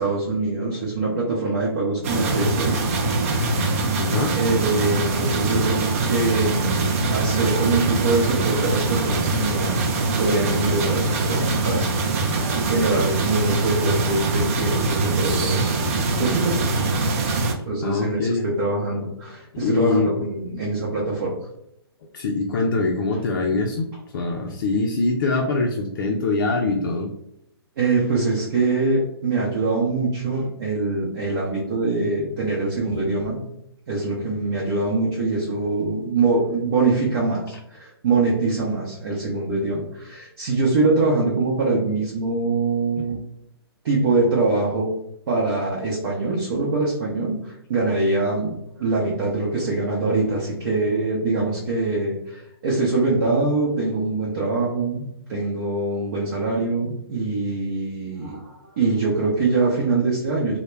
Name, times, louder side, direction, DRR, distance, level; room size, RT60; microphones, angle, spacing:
voice 1, 0.0-2.8 4.4-16.7 17.7-21.4 27.8-33.4 33.9-43.2 43.8-44.9 45.3-60.6, right 3 dB, 50° right, -6 dB, 0.7 m, -24 dB
sound 1, 2.0-17.5, right 3 dB, 35° right, 0.4 m, -23 dB
voice 2, 4.0-4.3 17.8-18.5 19.5-20.1 22.1-27.1, left 3 dB, 55° left, 1 dB, 0.4 m, -23 dB
2.2 x 2.1 x 3.1 m, 0.76 s
hypercardioid pair, 140°, 13 cm